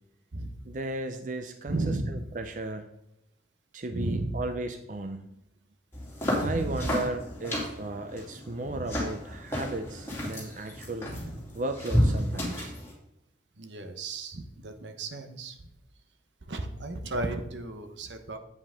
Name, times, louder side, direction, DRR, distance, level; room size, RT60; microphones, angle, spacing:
voice 1, 0.7-1.8 2.1-2.9 3.7-5.4 6.4-11.1 11.5-12.7, right 2 dB, 45° right, 7 dB, 0.5 m, -35 dB
voice 2, 1.7-2.3 3.9-4.4 6.3-7.0 8.7-8.9 11.1-11.4 13.6-15.6 16.5-18.4, right 2 dB, 80° right, 7 dB, 1.1 m, -34 dB
sound 1, 5.9-12.9, equal, 15° left, 2.6 m, -31 dB
8.5 x 7.7 x 3.7 m, 0.88 s
head